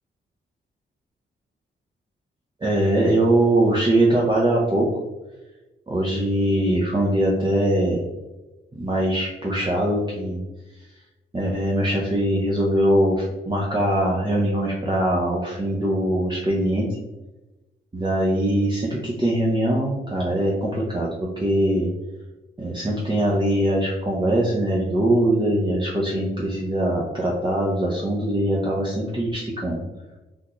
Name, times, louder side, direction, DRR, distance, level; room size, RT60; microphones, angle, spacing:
voice 1, 2.6-4.9 5.9-8.0 8.7-10.4 11.3-16.9 17.9-21.9 22.6-29.8, right 1 dB, 20° right, -4 dB, 0.7 m, -22 dB
3.6 x 2.4 x 3.0 m, 1.1 s
cardioid pair, 60°, 21 cm